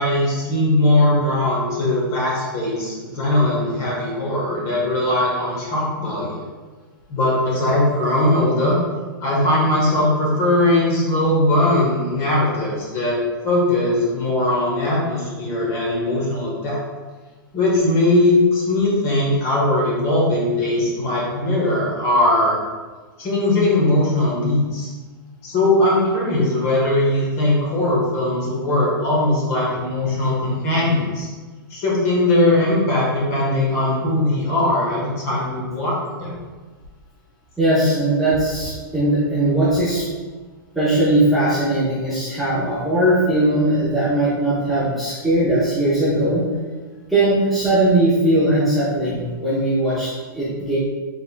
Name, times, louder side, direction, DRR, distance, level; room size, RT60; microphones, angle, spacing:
voice 1, 0.0-6.4 7.1-8.8 9.2-13.2 13.4-16.8 17.5-22.6 23.2-24.9 25.4-31.3 31.7-36.3, left 1 dB, 25° left, -5 dB, 1.3 m, -19 dB
voice 2, 37.6-40.0 40.7-46.4 47.1-50.8, right 1 dB, ahead, -13 dB, 0.9 m, -19 dB
5.3 x 4.0 x 2.3 m, 1.4 s
hypercardioid pair, 165°, 12 cm